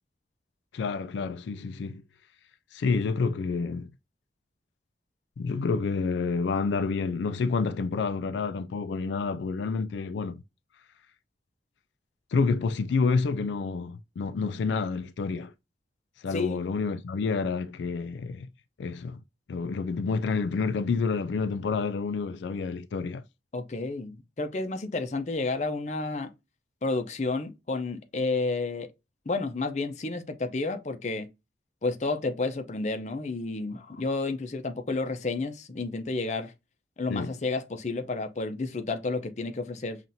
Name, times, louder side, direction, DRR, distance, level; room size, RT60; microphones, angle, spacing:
voice 1, 0.7-2.0 2.7-3.9 5.4-10.4 12.3-15.5 16.2-18.5 18.8-19.2 19.5-23.2 37.1-37.4, left 4 dB, 85° left, 0.3 m, -29 dB
voice 2, 16.3-16.6 23.5-26.3 26.8-28.9 29.3-31.3 31.8-36.5 37.0-40.0, left 3 dB, 40° left, 0.6 m, -31 dB
5.7 x 2.5 x 2.6 m
head